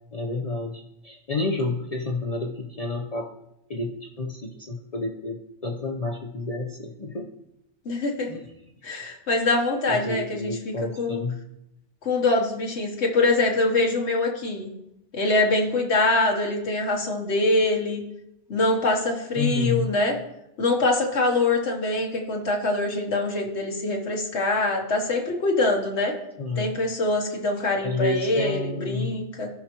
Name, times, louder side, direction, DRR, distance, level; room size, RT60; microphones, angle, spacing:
voice 1, 0.1-3.3 3.7-7.3 8.3-8.4 9.9-11.4 19.4-19.9 26.4-26.7 27.8-29.2, left 3 dB, 40° left, 0 dB, 0.7 m, -30 dB
voice 2, 7.8-8.3 8.8-11.2 12.0-14.7 15.1-18.0 18.5-20.2 20.6-26.2 26.6-29.5, left 2 dB, 75° left, 1 dB, 1.4 m, -24 dB
15.0 x 5.8 x 2.9 m, 0.83 s
omnidirectional pair, 1.2 m